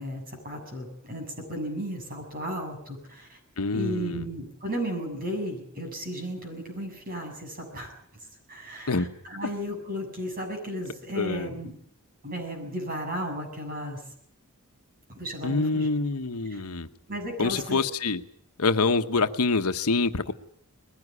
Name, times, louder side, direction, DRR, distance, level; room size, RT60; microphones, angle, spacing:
voice 1, 0.0-3.4 3.7-7.9 8.5-11.7 12.2-14.0 15.1-15.9 16.5-16.6 17.1-17.8, equal, 40° right, 3 dB, 7.1 m, -34 dB
voice 2, 3.6-4.2 8.9-9.1 11.2-11.5 15.4-16.9 17.4-18.2 18.6-20.3, left 3 dB, 85° left, 9 dB, 1.1 m, -26 dB
21.0 x 16.0 x 9.7 m, 0.68 s
head